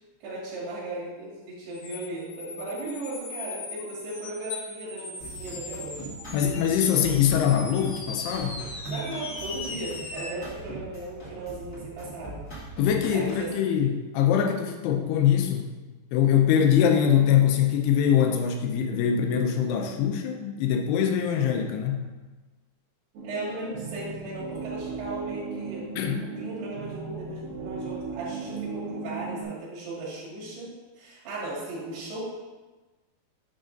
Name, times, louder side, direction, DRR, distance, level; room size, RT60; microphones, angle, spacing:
voice 1, 0.2-6.1 7.3-7.4 8.9-12.4 13.1-13.5 23.2-25.8 26.4-32.2, right 2 dB, 90° right, -8 dB, 4.1 m, -36 dB
sound 1, 1.7-10.3, left 4 dB, 70° left, 2.6 m, -39 dB
sound 2, 5.2-13.6, right 2 dB, 40° left, 1.4 m, -41 dB
voice 2, 6.3-8.6 12.8-15.7 16.1-22.0 26.0-26.2, left 8 dB, 90° left, 4 dB, 2.7 m, -23 dB
sound 3, 23.1-29.4, right 5 dB, 70° right, 2.3 m, -37 dB
8.2 x 6.3 x 2.6 m, 1.2 s
omnidirectional pair, 4.6 m